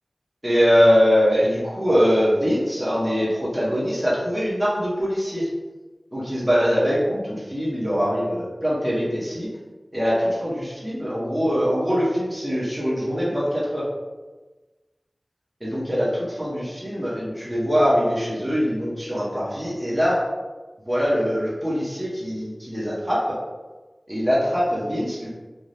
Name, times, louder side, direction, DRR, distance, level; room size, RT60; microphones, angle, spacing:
voice 1, 0.4-5.5 6.1-9.5 9.9-13.8 15.6-20.2 20.9-23.4 24.1-25.3, equal, 15° right, -7 dB, 0.8 m, -22 dB
3.3 x 2.2 x 2.6 m, 1.2 s
wide cardioid pair, 45°, 0 cm